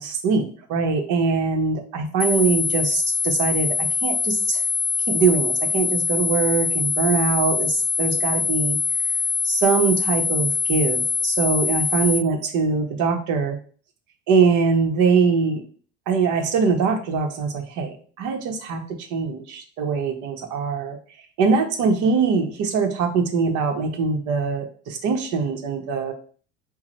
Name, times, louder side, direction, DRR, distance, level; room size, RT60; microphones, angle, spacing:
voice 1, 0.0-4.6 5.1-8.8 9.4-13.6 14.3-15.6 16.1-18.8 19.1-21.0 21.4-26.1, right 5 dB, 60° right, 5 dB, 1.0 m, -22 dB
sound 1, 2.2-12.2, left 5 dB, 10° left, 0.7 m, -23 dB
4.7 x 2.2 x 4.2 m, 0.43 s
hypercardioid pair, 75°, 33 cm